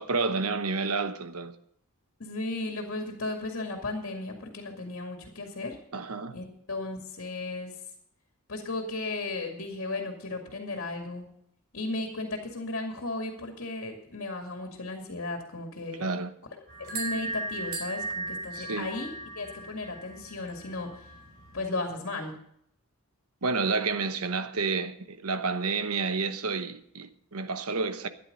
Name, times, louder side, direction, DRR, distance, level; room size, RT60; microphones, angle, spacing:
voice 1, 0.0-1.5 5.9-6.4 16.0-16.3 18.5-18.9 23.4-28.1, right 4 dB, 80° right, 1.1 m, -30 dB
voice 2, 2.2-5.8 6.3-7.7 8.5-11.3 11.7-16.0 16.8-21.0 21.5-22.3, left 2 dB, 60° left, 2.2 m, -35 dB
sound 1, 16.7-21.7, right 2 dB, 45° right, 3.9 m, -38 dB
13.5 x 10.0 x 5.4 m
head